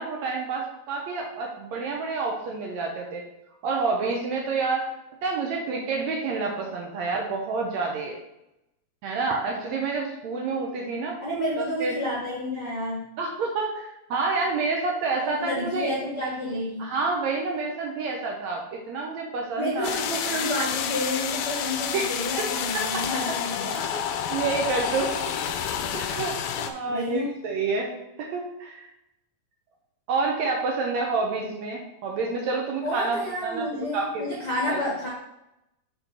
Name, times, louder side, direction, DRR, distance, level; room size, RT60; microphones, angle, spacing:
voice 1, 0.0-3.2 3.6-4.9 5.2-8.2 9.0-11.2 11.6-11.9 13.2-15.9 16.8-20.0 21.9-22.0 22.7-23.0 24.3-25.1 25.9-28.9 30.1-33.7 33.9-34.2 34.7-34.9, right 4 dB, 80° right, 0 dB, 1.6 m, -28 dB
voice 2, 11.2-13.0 15.2-16.9 19.6-24.0 26.8-27.3 32.8-35.1, left 1 dB, 65° left, -5 dB, 1.0 m, -30 dB
sound 1, 19.8-26.7, left 8 dB, 85° left, 1.8 m, -29 dB
6.1 x 4.2 x 5.3 m, 0.88 s
omnidirectional pair, 4.1 m